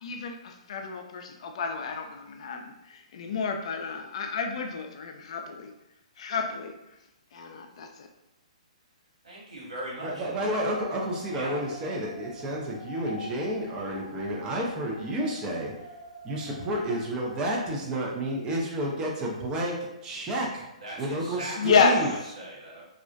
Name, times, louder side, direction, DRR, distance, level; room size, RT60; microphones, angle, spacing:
voice 1, 0.0-5.7 6.2-6.7 7.3-8.1 21.6-22.0, left 5 dB, 60° left, 5 dB, 0.4 m, -29 dB
voice 2, 9.2-10.5 11.3-12.0 20.8-22.9, right 1 dB, 85° right, -6 dB, 1.2 m, -40 dB
sound 1, 9.9-17.7, left 2 dB, 10° left, 0.8 m, -46 dB
voice 3, 10.0-15.7 16.2-19.8 20.0-20.7 21.0-22.1, right 1 dB, 20° right, -2 dB, 0.5 m, -30 dB
2.4 x 2.1 x 2.4 m, 0.90 s
hypercardioid pair, 135°, 4 cm